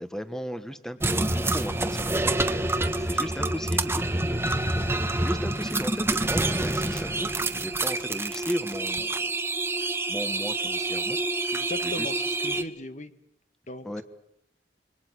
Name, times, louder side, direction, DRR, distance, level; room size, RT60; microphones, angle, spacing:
voice 1, 0.0-4.4 5.2-9.3 9.8-11.2 11.8-12.1 13.8-14.0, equal, 5° left, 9 dB, 1.3 m, -36 dB
sound 1, 1.0-12.6, right 2 dB, 15° right, 1.2 m, -27 dB
voice 2, 11.5-13.1 13.7-14.0, left 2 dB, 45° left, 9 dB, 1.7 m, -38 dB
28.0 x 24.0 x 6.2 m, 0.75 s
head